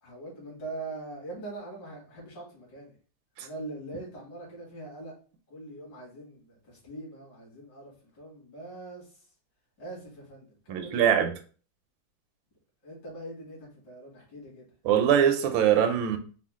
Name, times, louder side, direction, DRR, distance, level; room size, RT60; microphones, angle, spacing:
voice 1, 0.0-2.9 3.4-5.1 5.5-9.3 9.8-11.1 12.8-14.7, right 2 dB, 60° left, 2.7 m, -42 dB
voice 2, 10.7-11.3 14.8-16.2, right 9 dB, 80° right, 1.3 m, -22 dB
5.0 x 2.3 x 3.5 m
omnidirectional pair, 2.2 m